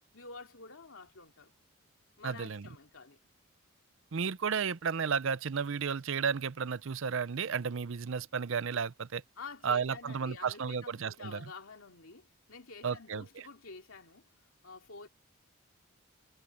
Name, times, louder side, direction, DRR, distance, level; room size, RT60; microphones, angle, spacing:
voice 1, 0.1-1.5 2.2-3.2 9.4-14.3 14.6-15.1, left 4 dB, 70° left, 2.8 m, -49 dB
voice 2, 2.2-2.6 4.1-9.2 9.6-11.4 12.8-13.2, right 6 dB, 60° right, 0.5 m, -33 dB
head